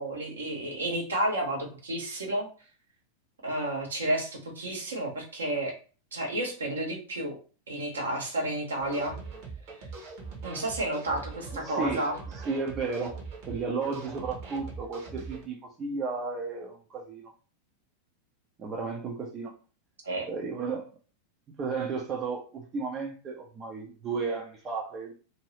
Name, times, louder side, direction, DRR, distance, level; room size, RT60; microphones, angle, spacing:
voice 1, 0.0-2.5 3.4-5.7 6.1-7.3 7.7-9.1 10.4-12.2 20.0-20.3, right 1 dB, 70° right, 1.1 m, -31 dB
sound 1, 8.8-15.4, right 4 dB, 50° right, 1.2 m, -42 dB
voice 2, 11.5-13.2 13.5-17.3 18.6-19.5 20.3-20.9 21.6-25.1, right 4 dB, 25° right, 0.6 m, -33 dB
2.8 x 2.7 x 3.1 m
figure-of-eight pair, 90°, 0 cm